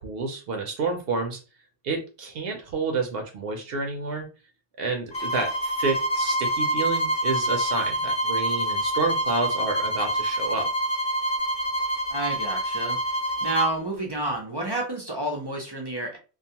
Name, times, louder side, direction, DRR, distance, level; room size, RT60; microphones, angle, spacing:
voice 1, 0.0-1.4 1.8-4.3 4.8-10.7, right 3 dB, 70° right, 3 dB, 0.8 m, -29 dB
sound 1, 5.1-13.7, equal, 30° left, 0.7 m, -26 dB
voice 2, 12.1-13.0 13.4-16.2, right 2 dB, 35° right, -1 dB, 0.4 m, -30 dB
2.4 x 2.3 x 2.7 m, 0.34 s
omnidirectional pair, 1.1 m